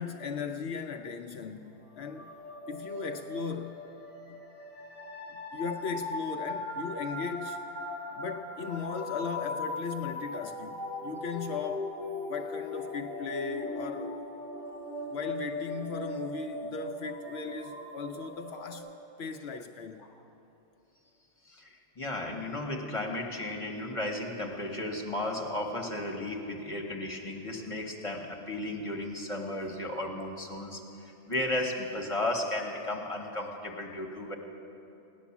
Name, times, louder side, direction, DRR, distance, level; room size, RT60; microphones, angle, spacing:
voice 1, 0.0-2.3 2.7-3.8 4.3-4.4 5.3-7.6 8.1-11.9 12.3-14.2 15.1-18.9 19.2-20.0, left 6 dB, 65° left, 5 dB, 0.9 m, -37 dB
sound 1, 2.0-18.8, left 1 dB, 50° right, 3.7 m, -39 dB
voice 2, 21.4-34.4, left 1 dB, 30° left, 1 dB, 1.4 m, -34 dB
17.0 x 11.0 x 7.2 m, 2.9 s
omnidirectional pair, 1.2 m